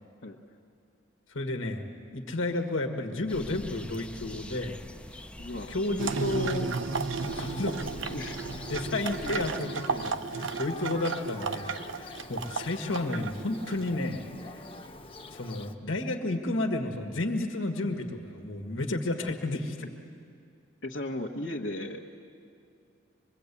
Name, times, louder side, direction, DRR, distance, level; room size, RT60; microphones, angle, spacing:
voice 1, 1.3-4.8 5.7-6.7 7.3-7.8 8.7-14.3 14.5-14.6 15.3-19.8, left 2 dB, 85° left, 5 dB, 1.8 m, -32 dB
sound 1, 3.3-9.6, left 1 dB, 5° left, 0.6 m, -44 dB
voice 2, 5.4-5.8 6.2-6.4 8.1-8.4 12.3-12.4 20.8-22.2, left 1 dB, 65° left, -1 dB, 1.3 m, -36 dB
sound 2, 6.0-13.9, right 4 dB, 75° right, 0.9 m, -34 dB
Thunder, 7.2-15.7, left 2 dB, 30° left, 1.1 m, -44 dB
25.0 x 22.5 x 8.5 m, 2.4 s
head